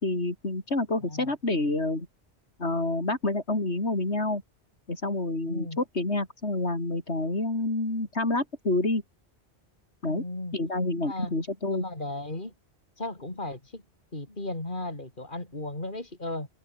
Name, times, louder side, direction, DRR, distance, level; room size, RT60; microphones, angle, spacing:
voice 1, 0.0-2.1 2.6-4.4 4.9-9.0 10.0-10.2 10.5-11.8, left 2 dB, 80° left, 5.0 m, -28 dB
voice 2, 5.5-5.8 10.1-10.6 11.0-11.3 11.7-12.5 13.0-13.8 14.1-16.5, left 2 dB, 50° left, 4.7 m, -35 dB
omnidirectional pair, 1.1 m